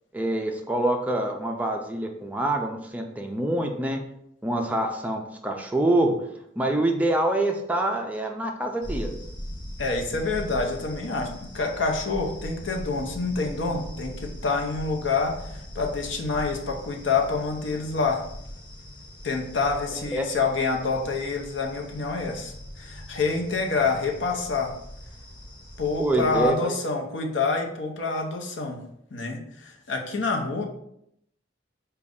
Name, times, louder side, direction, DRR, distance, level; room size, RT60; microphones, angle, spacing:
voice 1, 0.1-4.0 4.4-6.1 6.6-9.1 20.1-20.2 26.0-26.7, right 1 dB, 10° right, 2 dB, 0.4 m, -25 dB
sound 1, 8.8-26.5, equal, 25° left, 0.9 m, -41 dB
voice 2, 9.8-18.3 19.2-24.7 25.8-28.8 29.1-30.6, left 4 dB, 75° left, 2 dB, 0.7 m, -27 dB
5.0 x 2.3 x 3.6 m, 0.74 s
head